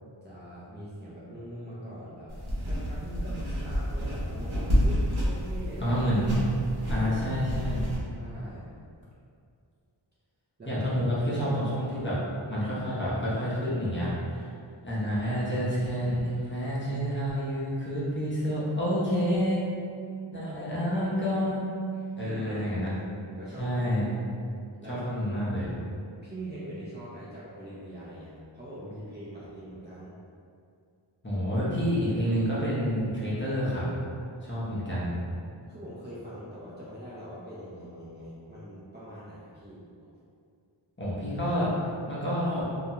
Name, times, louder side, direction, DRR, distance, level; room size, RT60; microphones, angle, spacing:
voice 1, 0.2-2.4 2.7-6.0 6.8-7.5 8.1-8.7 10.6-10.8 19.9-20.8 21.9-22.7 23.1-24.0 24.8-25.1 26.2-30.2 35.7-39.8, right 1 dB, 25° right, -10 dB, 0.4 m, -43 dB
sound 1, 2.3-8.0, equal, 80° right, 0.9 m, -29 dB
voice 2, 5.8-6.3 6.9-7.8 10.7-12.2 12.5-14.1 14.8-19.7 20.3-21.7 22.2-22.9 23.6-24.1 24.9-25.7 31.2-33.8 34.4-35.2 41.0-41.7 42.1-42.6, equal, 25° left, -9 dB, 0.7 m, -28 dB
2.4 x 2.1 x 2.8 m, 2.3 s
wide cardioid pair, 70°, 47 cm